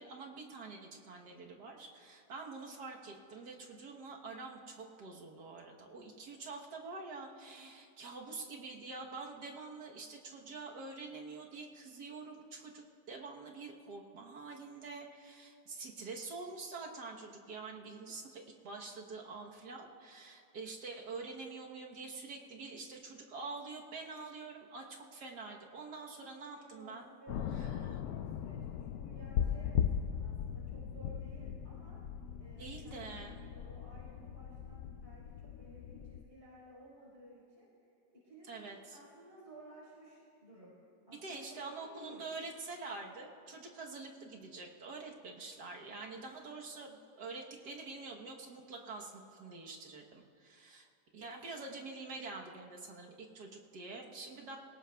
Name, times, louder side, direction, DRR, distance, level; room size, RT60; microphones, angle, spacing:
voice 1, 0.0-27.0 27.6-28.0 32.6-33.4 38.5-39.0 41.2-50.9 51.1-54.6, right 3 dB, 70° right, 0 dB, 1.7 m, -46 dB
voice 2, 26.0-32.0 32.4-37.7 38.1-40.7 41.1-41.4 41.7-42.2, right 1 dB, 35° right, -6 dB, 4.4 m, -56 dB
sound 1, 27.3-36.2, left 9 dB, 70° left, 1.0 m, -38 dB
22.5 x 18.0 x 2.3 m, 2.4 s
omnidirectional pair, 1.8 m